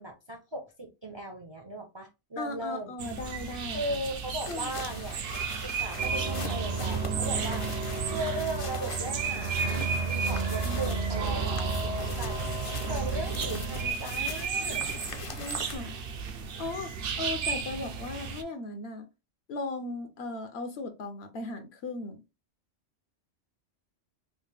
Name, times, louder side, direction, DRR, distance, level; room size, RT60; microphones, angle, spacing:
voice 1, 0.0-2.9 3.7-5.2 5.6-14.9, right 1 dB, 35° right, 0.4 m, -38 dB
voice 2, 2.4-3.8 4.5-4.7 10.6-10.8 15.3-16.0 16.6-19.1 19.5-22.2, left 2 dB, 65° left, 0.9 m, -37 dB
sound 1, 3.0-18.4, right 5 dB, 65° right, 0.8 m, -35 dB
sound 2, 4.4-15.8, left 4 dB, 45° left, 0.4 m, -42 dB
sound 3, 6.0-13.9, right 4 dB, 85° right, 1.3 m, -32 dB
3.4 x 2.5 x 3.2 m
omnidirectional pair, 1.2 m